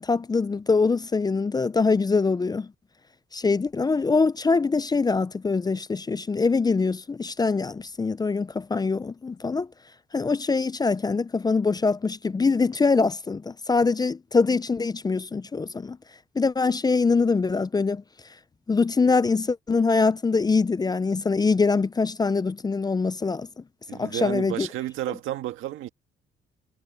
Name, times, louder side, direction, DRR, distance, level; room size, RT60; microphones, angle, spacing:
voice 1, 0.0-2.7 3.3-9.7 10.1-16.0 16.4-18.0 18.7-23.5 24.0-24.7, left 4 dB, 20° left, 0.4 m, -23 dB
voice 2, 23.9-25.9, right 14 dB, 90° right, 1.9 m, -31 dB
cardioid pair, 90°, 20 cm